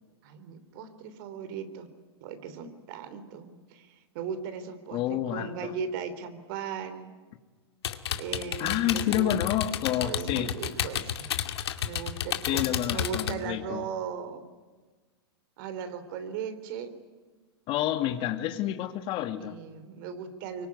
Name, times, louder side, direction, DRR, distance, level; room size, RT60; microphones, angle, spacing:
voice 1, 0.2-1.9 2.2-7.1 8.2-9.3 10.0-11.3 11.8-14.5 15.6-16.9 19.4-20.7, right 6 dB, 55° right, 10 dB, 3.5 m, -37 dB
voice 2, 4.9-5.7 8.6-10.5 12.5-13.8 17.7-19.6, left 12 dB, 40° left, 8 dB, 2.0 m, -29 dB
sound 1, 7.8-13.3, left 10 dB, 75° left, 2.3 m, -31 dB
25.0 x 23.5 x 9.7 m, 1.4 s
hypercardioid pair, 120°, 14 cm